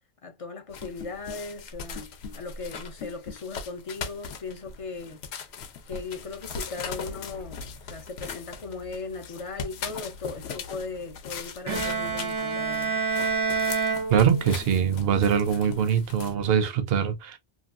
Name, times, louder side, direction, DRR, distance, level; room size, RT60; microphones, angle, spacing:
voice 1, 0.2-2.1 2.3-5.5 5.9-13.0, left 4 dB, 50° left, 0.4 m, -38 dB
sound 1, 0.7-16.3, left 6 dB, 85° left, 0.8 m, -39 dB
Bowed string instrument, 11.7-14.8, right 5 dB, 40° right, 0.5 m, -28 dB
voice 2, 14.1-17.4, right 7 dB, 75° right, 0.8 m, -23 dB
2.8 x 2.3 x 2.4 m
omnidirectional pair, 1.1 m